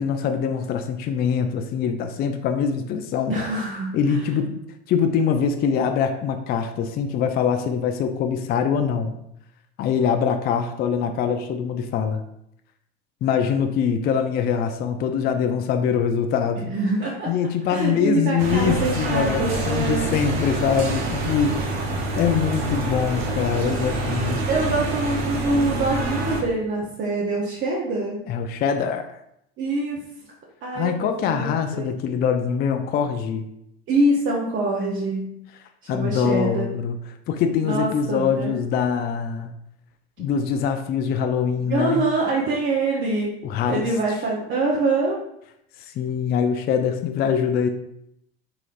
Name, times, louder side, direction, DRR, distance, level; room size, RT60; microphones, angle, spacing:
voice 1, 0.0-3.4 3.9-4.6 4.9-9.2 9.8-12.2 13.2-16.7 17.3-21.6 22.1-24.5 28.3-29.2 30.7-33.5 35.9-37.0 37.3-39.5 40.2-42.0 43.4-43.9 46.0-47.7, left 7 dB, 35° left, 7 dB, 0.4 m, -23 dB
voice 2, 3.3-4.3 16.6-17.3 17.7-20.1 24.5-28.2 29.6-30.0 30.6-31.9 33.9-35.3 35.8-36.7 37.6-38.6 41.7-43.3 43.6-45.2, right 2 dB, 40° right, -3 dB, 0.7 m, -24 dB
sound 1, 18.4-26.4, right 2 dB, 85° right, 0.7 m, -26 dB
3.9 x 3.1 x 2.4 m, 0.77 s
hypercardioid pair, 80°, 30 cm